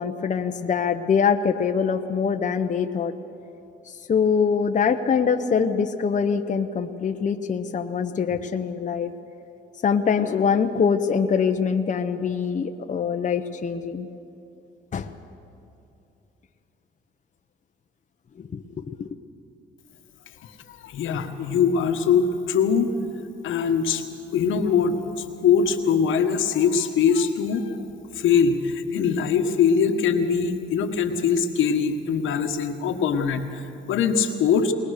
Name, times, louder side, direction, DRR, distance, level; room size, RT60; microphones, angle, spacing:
voice 1, 0.0-3.1 4.1-9.1 9.8-14.1 14.9-15.1 18.4-18.6 19.0-19.1, left 6 dB, 40° left, 5 dB, 0.9 m, -23 dB
voice 2, 20.7-22.9 23.4-24.0 24.3-27.8 28.1-34.7, left 6 dB, 80° left, 6 dB, 1.4 m, -22 dB
20.5 x 20.0 x 6.6 m, 2.8 s
cardioid pair, 90°, 20 cm